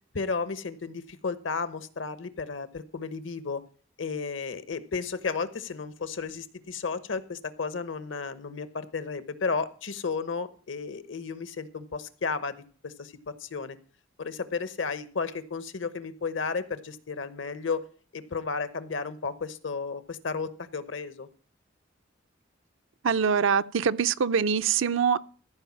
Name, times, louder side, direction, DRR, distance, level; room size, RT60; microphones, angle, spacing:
voice 1, 0.1-3.6 4.0-12.6 12.8-13.8 14.2-17.8 18.1-21.3, left 4 dB, 70° left, 1.0 m, -33 dB
voice 2, 23.0-25.2, right 6 dB, 80° right, 0.5 m, -24 dB
14.5 x 5.0 x 7.2 m
head